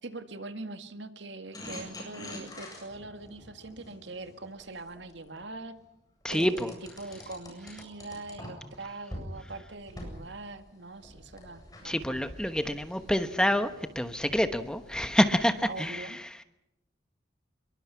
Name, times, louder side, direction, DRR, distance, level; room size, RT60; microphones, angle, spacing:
voice 1, 0.0-5.8 6.3-12.2 15.7-16.2, right 2 dB, 75° right, 8 dB, 1.9 m, -42 dB
sound 1, 1.5-5.4 6.3-8.8 9.1-9.3 9.8-15.9, left 1 dB, 20° left, 7.9 m, -46 dB
voice 2, 6.2-6.7 11.8-16.3, equal, 5° left, 9 dB, 1.1 m, -27 dB
26.0 x 23.0 x 5.8 m, 0.85 s
head